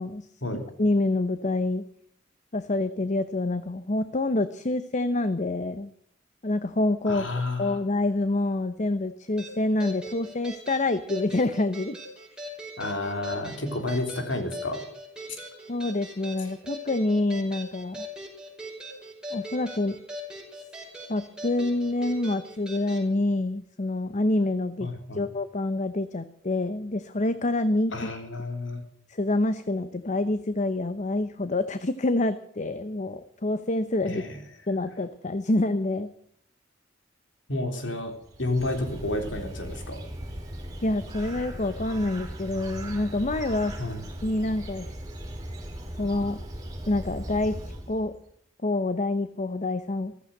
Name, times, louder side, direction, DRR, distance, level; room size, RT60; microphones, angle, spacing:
voice 1, 0.8-1.8 2.5-5.9 6.4-7.3 7.6-12.0 15.7-18.1 19.3-20.0 21.1-28.1 29.1-34.2 34.7-36.1 40.8-43.8 44.2-44.9 46.0-46.4 46.9-47.6 47.9-48.1 48.6-50.2, left 2 dB, 40° left, 12 dB, 0.8 m, -27 dB
voice 2, 7.1-7.8 12.8-14.8 24.8-25.3 27.9-28.8 34.1-34.4 37.5-38.1 38.4-40.0 43.8-44.0, left 2 dB, 70° left, 5 dB, 3.7 m, -30 dB
sound 1, 9.4-23.1, equal, 5° right, 5.3 m, -41 dB
Bird, 38.1-48.2, right 1 dB, 20° right, 4.8 m, -38 dB
15.0 x 14.5 x 6.6 m, 0.67 s
head